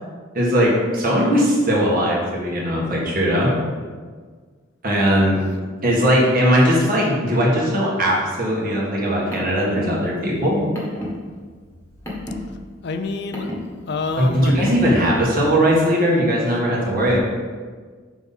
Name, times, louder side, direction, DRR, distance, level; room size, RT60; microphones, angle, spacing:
voice 1, 0.3-3.6 4.8-5.4 5.8-10.7 14.2-17.2, equal, 45° right, -3 dB, 1.6 m, -19 dB
Car, 9.0-15.2, left 1 dB, 15° left, 1.4 m, -34 dB
voice 2, 12.8-13.5 13.9-14.6, left 3 dB, 55° left, 7 dB, 0.5 m, -27 dB
6.0 x 4.1 x 5.5 m, 1.6 s
head